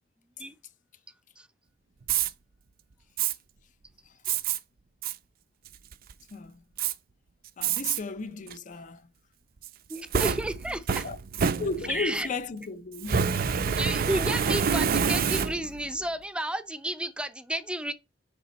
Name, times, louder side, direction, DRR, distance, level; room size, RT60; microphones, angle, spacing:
Fire, 2.0-2.3 3.2-3.3 4.3-4.6 5.0-5.2 5.7-6.1 6.8-6.9 7.6-8.0 8.5-8.6 9.6-12.1 13.0-15.9, right 6 dB, 55° right, 0.5 m, -27 dB
voice 1, 6.3-6.6 7.6-9.1 10.3-10.4 11.0-13.3, left 4 dB, 45° left, 0.5 m, -35 dB
voice 2, 9.9-11.0 11.9-12.3 13.8-17.9, right 1 dB, 5° right, 0.5 m, -32 dB
6.8 x 5.0 x 4.1 m
head